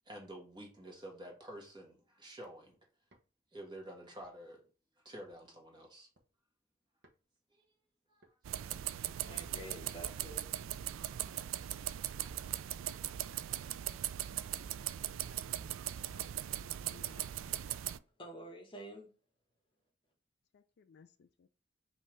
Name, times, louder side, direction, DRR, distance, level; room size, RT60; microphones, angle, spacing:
voice 1, 0.0-2.8 3.5-4.6 5.0-6.1 8.1-8.2, right 1 dB, 25° right, 1.5 m, -49 dB
sound 1, 3.1-3.3 4.2-4.6 5.3-5.6 5.9-6.3 7.0-7.2 8.2-8.4 9.3-9.7 10.4-10.6 11.4-11.6 12.2-12.4 13.3-13.5 14.3-14.6 15.3-15.5 16.1-16.4 17.2-17.4, right 2 dB, 60° right, 1.0 m, -65 dB
sound 2, 8.4-18.0, right 12 dB, 85° right, 0.3 m, -39 dB
voice 2, 9.2-10.5 18.2-19.1, right 1 dB, 25° left, 1.1 m, -48 dB
voice 3, 15.2-15.7 16.0-16.2 16.5-17.3 20.5-21.5, left 5 dB, 60° left, 0.4 m, -62 dB
5.4 x 2.7 x 3.1 m
head